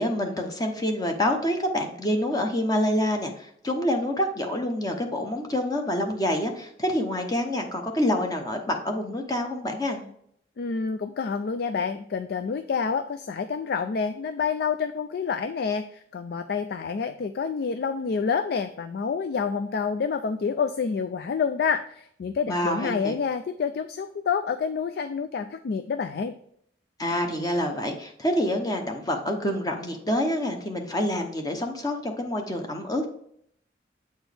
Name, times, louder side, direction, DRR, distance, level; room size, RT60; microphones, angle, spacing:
voice 1, 0.0-10.0 22.5-23.2 27.0-33.1, left 1 dB, 20° left, 4 dB, 0.7 m, -27 dB
voice 2, 10.6-26.3, left 5 dB, 60° left, 9 dB, 0.3 m, -28 dB
8.0 x 4.4 x 3.3 m, 0.68 s
head